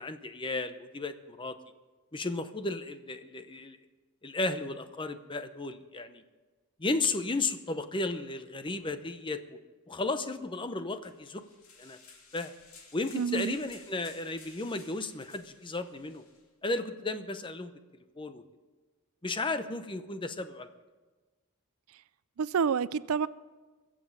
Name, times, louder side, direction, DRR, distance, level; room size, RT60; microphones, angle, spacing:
voice 1, 0.0-1.6 2.1-3.8 4.2-6.2 6.8-9.4 9.9-11.4 11.8-12.0 12.3-12.5 12.9-16.3 16.6-17.7 18.2-18.4 19.2-20.7, left 2 dB, 25° left, 0.7 m, -34 dB
sound 1, 11.0-16.4, left 4 dB, 90° left, 2.8 m, -55 dB
voice 2, 13.1-13.6 22.4-23.3, right 6 dB, 80° right, 0.4 m, -28 dB
22.5 x 7.6 x 6.7 m
head